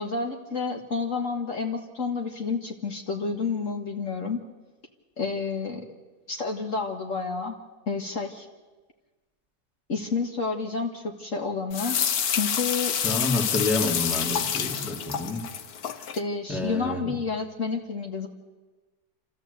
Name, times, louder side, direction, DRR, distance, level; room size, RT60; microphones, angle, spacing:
voice 1, 0.0-4.4 5.2-5.9 6.3-7.6 7.9-8.5 9.9-12.0 12.3-13.0 16.2-18.3, left 4 dB, 50° left, 1 dB, 2.0 m, -30 dB
sound 1, 11.7-16.2, left 8 dB, 70° left, 1.4 m, -28 dB
voice 2, 13.0-15.4 16.5-17.1, left 2 dB, ahead, -1 dB, 2.3 m, -28 dB
28.5 x 14.0 x 8.1 m, 1.3 s
omnidirectional pair, 1.7 m